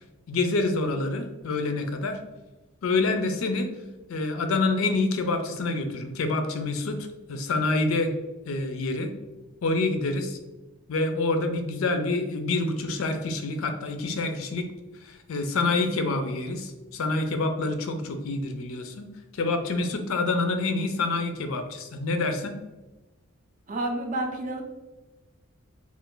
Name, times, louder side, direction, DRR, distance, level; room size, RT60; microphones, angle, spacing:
voice 1, 0.3-2.2 2.8-3.7 4.1-8.1 8.5-9.1 9.6-10.4 10.9-14.7 15.0-19.1 19.3-22.6, left 3 dB, 75° left, 6 dB, 0.4 m, -27 dB
voice 2, 23.7-24.6, right 1 dB, 35° right, 3 dB, 0.4 m, -29 dB
2.5 x 2.4 x 3.6 m, 1.1 s
head